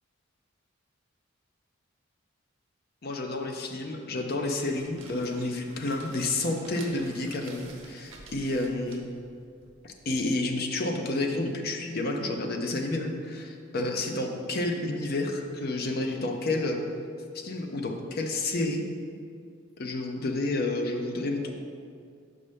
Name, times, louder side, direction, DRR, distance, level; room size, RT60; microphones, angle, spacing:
voice 1, 3.0-9.0 9.8-16.8 17.3-18.8 19.8-21.5, left 2 dB, 50° left, 3 dB, 0.6 m, -30 dB
sound 1, 4.5-10.2, right 3 dB, 75° right, 0.9 m, -50 dB
6.5 x 5.4 x 3.3 m, 2.3 s
head